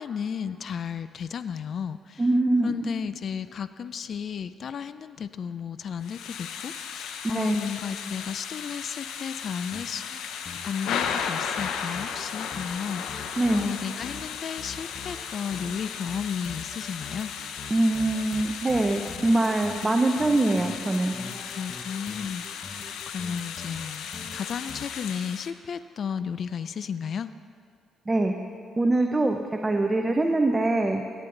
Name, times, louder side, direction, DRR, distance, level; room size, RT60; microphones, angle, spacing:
voice 1, 0.0-2.2 2.6-10.0 10.6-17.3 21.5-22.7 23.1-27.3, left 7 dB, 55° left, 13 dB, 0.4 m, -33 dB
voice 2, 2.2-2.9 7.3-7.6 13.4-13.7 17.7-21.2 28.1-28.4 28.8-31.0, right 2 dB, 20° right, 4 dB, 0.7 m, -23 dB
Thunder / Rain, 6.0-25.5, left 7 dB, 85° left, 0.7 m, -36 dB
sound 1, 9.7-10.2 10.4-11.3 11.6-12.8 13.1-14.3 14.6-15.8 16.1-24.9, left 4 dB, 40° left, 1.1 m, -43 dB
17.0 x 9.4 x 3.9 m, 2.4 s
cardioid pair, 90°, 0 cm